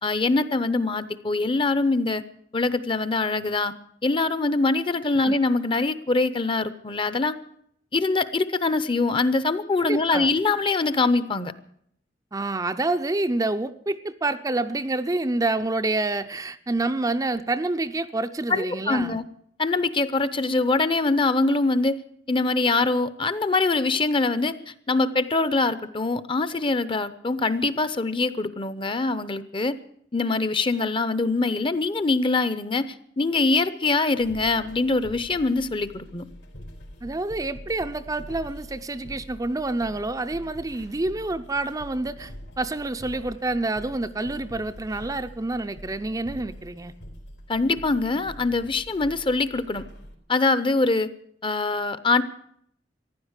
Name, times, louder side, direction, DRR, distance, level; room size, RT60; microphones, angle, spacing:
voice 1, 0.0-2.2 2.5-3.7 4.0-7.3 7.9-11.5 18.5-19.2 19.6-22.0 22.3-24.5 24.9-29.8 30.1-36.3 47.5-49.8 50.3-51.1 51.4-52.2, left 3 dB, 30° left, 14 dB, 0.7 m, -23 dB
voice 2, 9.8-10.3 12.3-19.2 37.0-46.9, right 2 dB, 20° right, 9 dB, 0.5 m, -28 dB
sound 1, 34.2-50.1, equal, 80° left, 3.9 m, -44 dB
15.0 x 11.0 x 8.1 m, 0.68 s
head